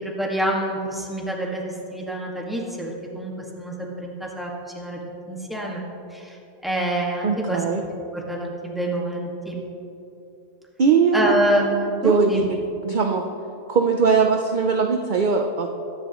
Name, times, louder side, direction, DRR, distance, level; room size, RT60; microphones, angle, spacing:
voice 1, 0.0-1.6 1.9-3.3 3.6-5.0 5.3-5.8 6.1-6.4 6.6-9.6 11.1-12.5, right 1 dB, ahead, -3 dB, 1.7 m, -27 dB
voice 2, 7.2-7.8 10.8-11.4 12.0-12.6 12.8-13.3 13.7-15.7, right 5 dB, 50° right, 4 dB, 0.6 m, -20 dB
21.5 x 10.5 x 3.1 m, 2.9 s
omnidirectional pair, 1.5 m